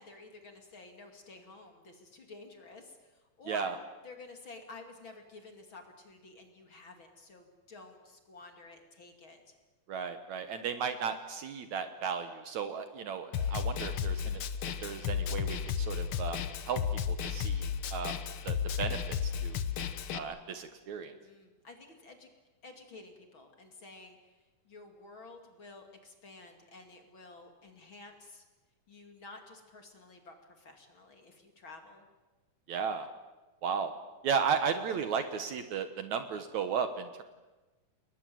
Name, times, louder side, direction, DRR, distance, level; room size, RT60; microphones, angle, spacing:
voice 1, 0.0-3.8 4.0-9.5 21.2-22.3 22.6-28.4 28.9-32.1, left 3 dB, 40° left, 4 dB, 2.8 m, -52 dB
voice 2, 9.9-14.4 14.8-16.4 16.7-18.2 18.4-19.6 20.1-21.1 32.7-33.1 33.6-33.9 34.2-37.2, right 6 dB, 65° right, 9 dB, 2.2 m, -35 dB
Snare drum, 13.3-20.2, left 7 dB, 85° left, 1.2 m, -33 dB
29.0 x 20.5 x 7.7 m, 1.2 s
omnidirectional pair, 4.0 m